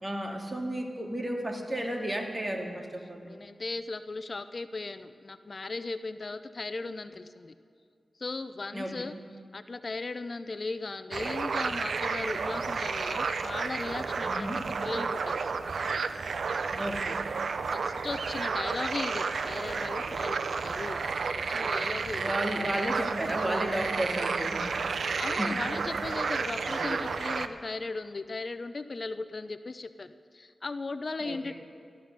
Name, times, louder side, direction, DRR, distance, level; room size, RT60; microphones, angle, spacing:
voice 1, 0.0-3.3 8.7-8.9 14.2-14.6 16.7-17.2 22.2-24.9 25.4-25.6 26.7-27.0 31.2-31.5, right 1 dB, 30° right, 2 dB, 2.4 m, -33 dB
voice 2, 3.2-7.5 8.2-9.2 9.5-15.4 17.7-22.3 25.2-31.5, left 3 dB, 50° left, 12 dB, 0.5 m, -37 dB
sound 1, 11.1-27.5, right 5 dB, 80° right, 0.6 m, -31 dB
14.5 x 12.0 x 6.6 m, 2.3 s
cardioid pair, 55°, 0 cm